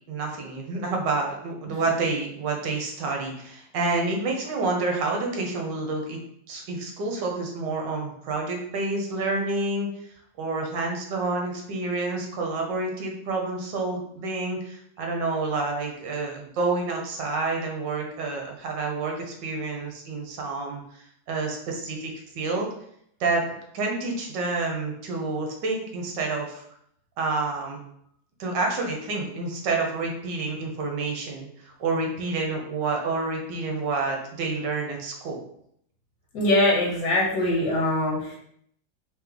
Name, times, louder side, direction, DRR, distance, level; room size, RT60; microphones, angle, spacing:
voice 1, 0.1-6.2 6.5-9.9 10.4-20.8 21.3-22.7 23.2-26.6 27.2-27.8 28.4-35.4, right 3 dB, 65° right, 1 dB, 1.4 m, -28 dB
voice 2, 36.3-38.4, left 1 dB, 60° left, -4 dB, 1.6 m, -22 dB
3.5 x 3.1 x 3.7 m, 0.70 s
omnidirectional pair, 2.2 m